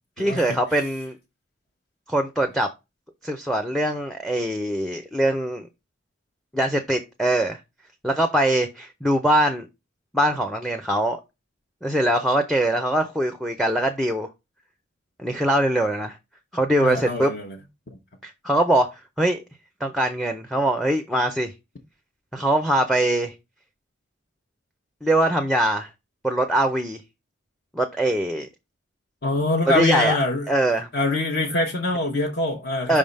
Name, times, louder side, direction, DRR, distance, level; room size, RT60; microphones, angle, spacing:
voice 1, 0.2-1.2 2.1-2.7 3.2-5.7 6.5-7.6 8.0-9.7 10.1-11.2 11.8-14.3 15.2-16.2 16.5-17.3 18.2-18.9 19.2-19.4 19.8-21.5 22.3-23.3 25.0-25.9 26.2-27.0 27.7-28.5 29.7-30.2 30.5-30.9 32.9-33.0, right 1 dB, ahead, 0.5 m, -22 dB
voice 2, 16.8-17.6 29.2-30.5 30.9-33.0, left 2 dB, 50° left, 1.0 m, -24 dB
5.4 x 3.6 x 5.3 m
head